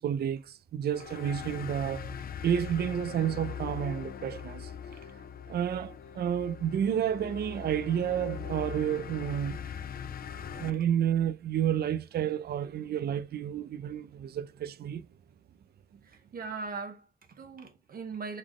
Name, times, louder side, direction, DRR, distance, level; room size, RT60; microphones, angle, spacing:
voice 1, 0.0-4.7 5.5-9.6 10.5-15.0, right 9 dB, 90° right, 0.4 m, -30 dB
sound 1, 0.9-10.7, left 8 dB, 70° left, 0.4 m, -41 dB
voice 2, 16.0-18.4, right 4 dB, 65° right, 0.8 m, -40 dB
4.0 x 3.5 x 3.1 m
wide cardioid pair, 145°, 16 cm